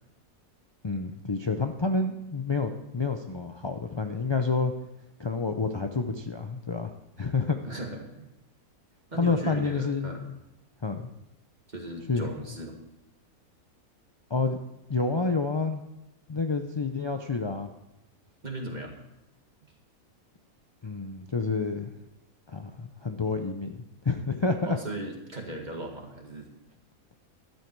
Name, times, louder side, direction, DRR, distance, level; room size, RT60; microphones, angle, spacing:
voice 1, 0.8-4.7 5.2-6.9 7.2-7.6 9.2-10.4 10.8-11.1 12.1-12.3 14.3-14.6 14.9-15.8 16.3-17.7 20.8-21.9 22.5-24.8, left 4 dB, 45° left, 4 dB, 0.3 m, -29 dB
voice 2, 7.6-8.3 9.1-10.2 11.7-12.8 18.4-19.0 24.7-26.5, right 2 dB, 30° right, 1 dB, 2.1 m, -37 dB
12.5 x 10.5 x 4.6 m, 0.93 s
omnidirectional pair, 1.5 m